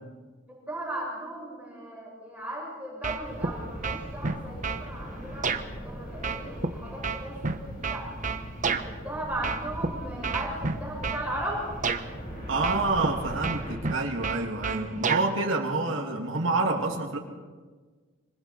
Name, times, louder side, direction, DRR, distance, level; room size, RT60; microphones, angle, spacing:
voice 1, 0.7-5.5 5.8-8.1 8.8-11.6, right 1 dB, 10° right, -5 dB, 7.2 m, -36 dB
sound 1, 3.0-3.5 3.8-4.8 5.4-5.6 6.2-8.9 9.4-9.9 10.2-11.2 11.8-12.0 12.6-13.1 13.4-15.3, right 4 dB, 40° right, 1.1 m, -29 dB
sound 2, 3.2-13.8, equal, 45° left, 7.2 m, -41 dB
sound 3, 7.8-13.0, left 1 dB, 70° left, 4.1 m, -47 dB
voice 2, 12.5-17.2, right 3 dB, 80° right, 1 dB, 2.6 m, -27 dB
26.0 x 25.0 x 4.4 m, 1.4 s
head